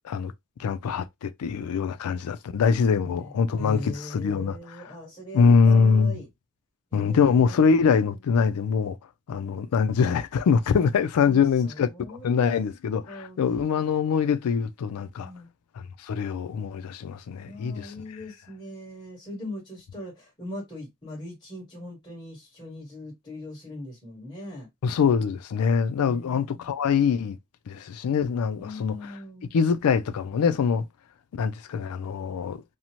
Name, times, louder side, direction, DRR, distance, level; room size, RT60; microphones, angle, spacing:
voice 1, 0.6-4.6 5.3-6.2 6.9-9.0 9.3-15.3 15.8-17.9 24.8-27.4 27.7-29.0 29.5-30.9 31.3-32.6, left 6 dB, 85° left, 0.4 m, -23 dB
voice 2, 3.0-6.3 6.9-7.8 11.2-12.5 13.1-13.4 15.2-15.5 17.4-24.7 25.9-26.7 28.6-29.5, left 1 dB, 20° left, 1.4 m, -40 dB
2.7 x 2.1 x 2.9 m
head